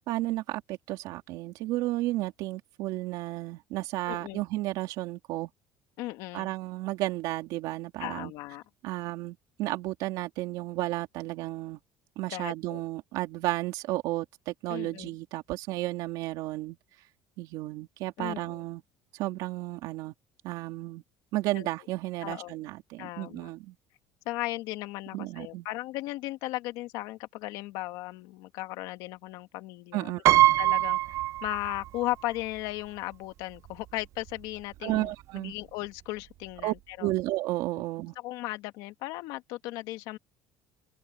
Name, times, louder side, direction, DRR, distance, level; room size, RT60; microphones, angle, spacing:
voice 1, 0.0-5.5 6.3-8.3 8.8-11.8 12.2-16.8 17.4-18.8 19.1-20.1 20.4-21.0 21.3-23.8 25.1-25.7 29.9-30.4 34.8-35.6 36.6-36.7 37.0-38.1, right 17 dB, 65° right, 3.4 m, -33 dB
voice 2, 4.1-4.4 6.0-6.5 8.0-8.6 12.3-12.8 14.7-15.1 18.2-18.6 21.5-21.7 22.2-22.6 23.0-23.5 24.3-30.1 30.6-37.1 38.2-40.2, left 18 dB, 70° left, 2.0 m, -36 dB
Piano, 30.3-32.1 32.4-32.5 33.7-33.8 34.0-34.3, right 16 dB, 45° right, 0.8 m, -23 dB
open air
cardioid pair, 160°, 7 cm